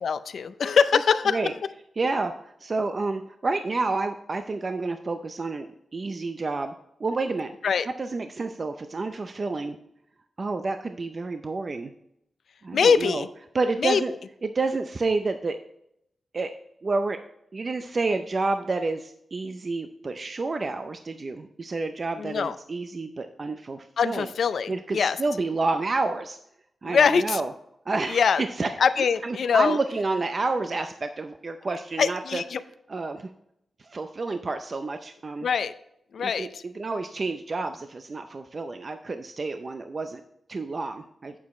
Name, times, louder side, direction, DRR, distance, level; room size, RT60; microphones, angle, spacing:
voice 1, 0.0-1.4 7.6-7.9 12.7-13.3 13.8-14.0 22.2-22.5 24.0-25.2 26.8-27.4 28.1-28.4 28.8-29.8 32.0-32.6 35.4-35.7 36.1-36.6, left 6 dB, 75° left, 12 dB, 0.5 m, -23 dB
voice 2, 2.0-6.7 7.0-7.5 8.0-9.8 10.4-11.9 12.6-13.2 13.5-14.1 14.4-15.6 16.3-16.5 16.8-17.2 17.5-24.3 24.7-26.4 26.8-27.5 27.9-28.7 29.2-32.4 32.9-33.3 33.8-35.5 36.2-40.2 40.5-41.3, right 3 dB, 40° right, 7 dB, 0.5 m, -29 dB
8.4 x 7.2 x 3.1 m, 0.77 s
wide cardioid pair, 90°, 0 cm